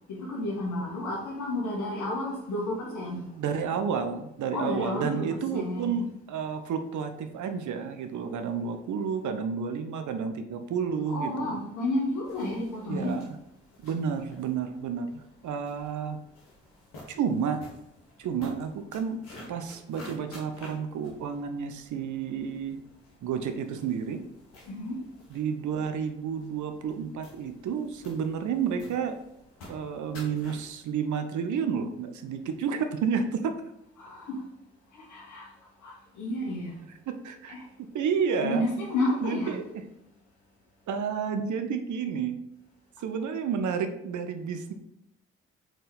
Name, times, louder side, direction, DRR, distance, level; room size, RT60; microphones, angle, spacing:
voice 1, 0.1-3.3 4.5-6.1 11.1-13.1 24.7-25.0 34.0-34.4 34.9-35.5 35.8-36.8 37.5-37.7 38.4-39.5, left 1 dB, 65° left, -2 dB, 2.6 m, -31 dB
voice 2, 3.4-11.6 12.9-13.3 13.8-16.2 17.1-17.6 18.2-19.2 19.5-22.8 23.2-24.2 25.3-29.2 29.7-33.5 37.1-37.5 37.9-38.6 39.2-39.6 40.9-42.4 43.0-44.7, right 6 dB, 65° right, 7 dB, 0.9 m, -31 dB
sound 1, 12.2-30.7, left 1 dB, 80° left, 2.1 m, -52 dB
6.2 x 4.4 x 5.1 m, 0.80 s
hypercardioid pair, 40°, 32 cm